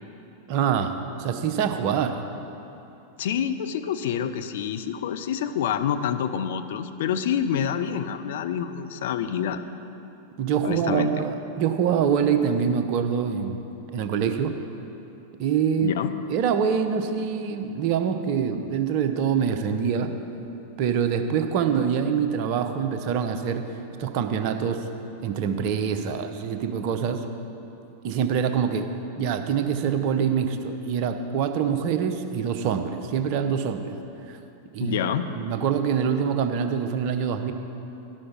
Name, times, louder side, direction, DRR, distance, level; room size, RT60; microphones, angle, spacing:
voice 1, 0.5-2.2 10.4-13.6 13.9-14.5 15.4-15.9 16.3-20.1 20.8-23.6 24.0-24.8 25.2-27.2 28.0-28.9 29.2-34.0 34.3-34.4 34.7-35.0 35.3-37.5, right 7 dB, 45° right, 7 dB, 0.6 m, -25 dB
voice 2, 3.2-9.6 10.6-11.2 15.8-16.1 34.8-35.3, left 8 dB, 55° left, 9 dB, 0.5 m, -27 dB
11.0 x 6.4 x 5.9 m, 2.9 s
figure-of-eight pair, 90°, 0 cm